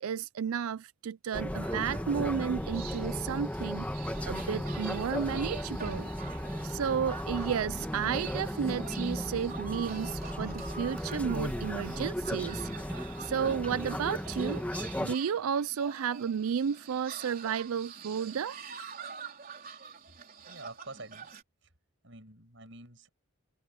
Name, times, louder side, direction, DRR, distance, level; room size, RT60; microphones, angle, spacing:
voice 1, 0.0-3.9 4.2-6.1 6.6-12.7 13.0-14.6 15.0-18.6, right 7 dB, 90° right, 0.4 m, -32 dB
sound 1, 1.3-15.1, equal, 5° left, 1.5 m, -35 dB
sound 2, 1.6-21.4, right 6 dB, 40° right, 4.0 m, -47 dB
voice 2, 20.5-21.3 21.6-21.7 22.0-23.1, right 2 dB, 60° right, 7.3 m, -47 dB
head